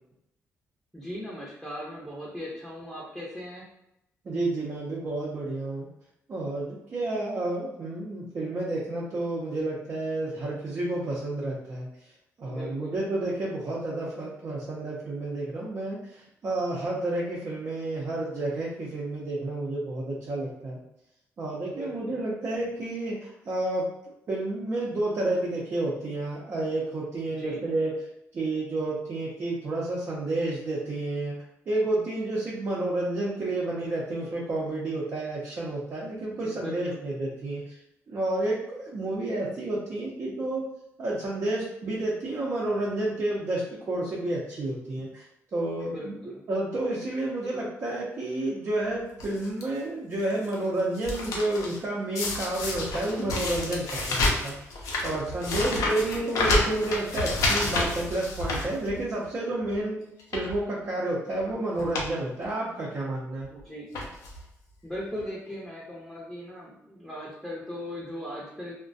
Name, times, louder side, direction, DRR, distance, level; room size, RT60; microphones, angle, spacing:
voice 1, 0.9-3.7 12.4-13.0 21.7-22.2 27.2-27.6 36.4-37.0 45.7-46.4 55.5-56.1 63.5-63.9 64.8-68.7, equal, ahead, -5 dB, 0.7 m, -39 dB
voice 2, 4.2-5.9 6.3-11.9 12.4-20.8 21.4-23.9 24.3-27.9 28.3-31.3 31.7-37.8 38.1-40.6 41.0-45.2 45.5-46.1 46.5-60.0 60.3-63.5, right 2 dB, 50° right, -6 dB, 0.6 m, -30 dB
sound 1, 49.2-49.6 50.2-50.5 50.8-51.8 52.2-59.3 59.6-59.8 60.2-60.6 61.4-61.5 61.8-62.1 62.4-62.5 63.4-63.6 63.9-64.4 65.2-65.3 65.5-65.6, left 2 dB, 80° left, 0.6 m, -29 dB
2.3 x 2.1 x 2.6 m, 0.82 s
cardioid pair, 90°, 6 cm